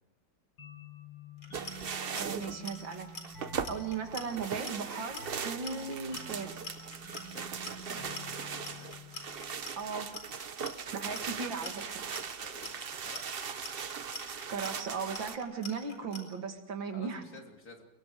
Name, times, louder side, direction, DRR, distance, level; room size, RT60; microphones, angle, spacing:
sound 1, 0.6-9.9, left 1 dB, 65° left, 3.6 m, -49 dB
Clock, 1.4-16.2, left 2 dB, 85° left, 4.9 m, -44 dB
sound 2, 1.5-15.4, right 6 dB, 50° right, 0.7 m, -39 dB
voice 1, 2.1-3.1 3.6-6.6 9.8-10.2 10.9-12.0 14.5-17.2, right 5 dB, 75° right, 5 dB, 2.9 m, -37 dB
voice 2, 7.3-9.0 10.8-11.4 12.4-13.6 16.9-17.8, left 2 dB, 45° left, 2 dB, 3.3 m, -53 dB
29.0 x 23.0 x 4.8 m, 0.88 s
omnidirectional pair, 2.1 m